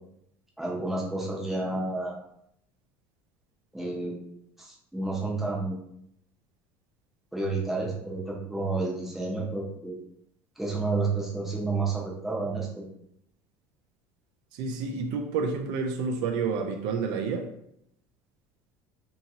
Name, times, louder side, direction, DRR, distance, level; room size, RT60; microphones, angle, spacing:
voice 1, 0.6-2.1 3.7-4.2 4.6-5.8 7.3-10.0 10.6-12.9, right 3 dB, 5° right, -3 dB, 0.7 m, -30 dB
voice 2, 14.5-17.5, right 5 dB, 65° right, 4 dB, 0.4 m, -29 dB
2.8 x 2.8 x 2.4 m, 0.73 s
cardioid pair, 130°, 8 cm